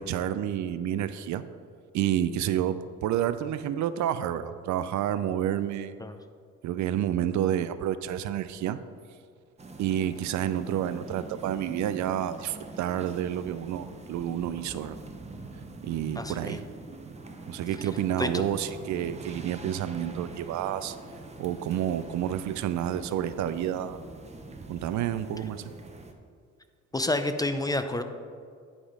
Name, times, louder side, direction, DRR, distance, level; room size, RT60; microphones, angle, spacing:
voice 1, 0.0-1.4 1.9-5.9 6.6-8.8 9.8-15.0 15.8-16.6 17.5-21.0 21.4-24.0 24.7-25.7, right 10 dB, 70° right, 13 dB, 0.4 m, -29 dB
sound 1, 9.6-26.1, right 3 dB, 20° right, 0.7 m, -44 dB
voice 2, 16.2-16.6 18.2-18.4 26.9-28.0, left 2 dB, 15° left, 8 dB, 0.4 m, -29 dB
10.0 x 3.7 x 4.9 m, 2.2 s
cardioid pair, 90°, 30 cm